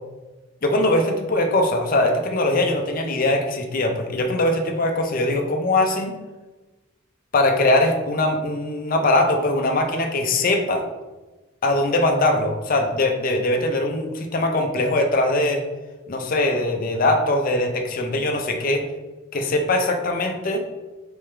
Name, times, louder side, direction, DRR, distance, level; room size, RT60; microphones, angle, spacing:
voice 1, 0.6-6.2 7.3-10.8 11.6-15.6 16.1-18.9 19.3-20.6, left 2 dB, 45° left, 3 dB, 0.5 m, -21 dB
3.4 x 3.4 x 3.2 m, 1.2 s
head